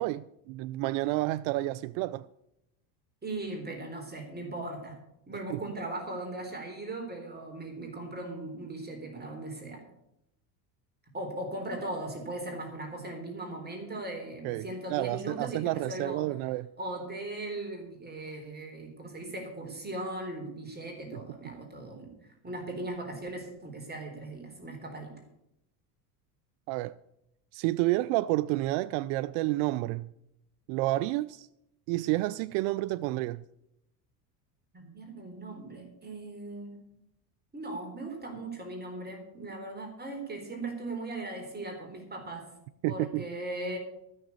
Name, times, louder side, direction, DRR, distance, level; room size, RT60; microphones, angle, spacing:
voice 1, 0.0-2.3 5.5-5.6 14.4-16.7 26.7-26.9 27.5-30.1 30.7-31.5 31.9-33.4 42.8-43.2, right 18 dB, 65° right, 0.5 m, -30 dB
voice 2, 3.2-5.0 5.3-9.8 11.1-16.3 16.8-25.1 34.7-36.8 37.5-42.4 42.9-43.8, right 2 dB, 20° right, 3.9 m, -38 dB
13.5 x 6.7 x 8.4 m
supercardioid pair, 95°, 49 cm